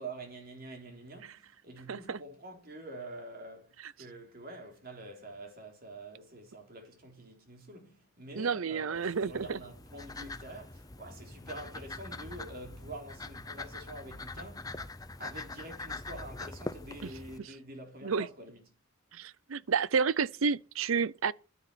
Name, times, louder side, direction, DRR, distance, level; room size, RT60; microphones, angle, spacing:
voice 1, 0.0-14.8 15.2-18.6, right 2 dB, 45° right, 3.6 m, -46 dB
voice 2, 1.9-2.2 8.4-9.6 17.0-17.1 18.0-18.3 19.1-21.3, right 5 dB, 80° right, 0.6 m, -30 dB
sound 1, 8.9-17.4, left 2 dB, 15° left, 0.8 m, -43 dB
10.0 x 10.0 x 9.9 m
head